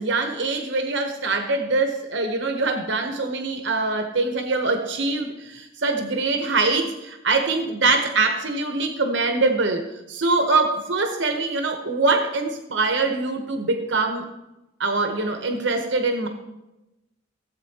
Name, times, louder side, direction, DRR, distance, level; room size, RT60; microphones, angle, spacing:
voice 1, 0.0-14.3 14.8-16.3, right 3 dB, 65° right, 5 dB, 0.8 m, -23 dB
16.0 x 7.8 x 2.8 m, 0.97 s
head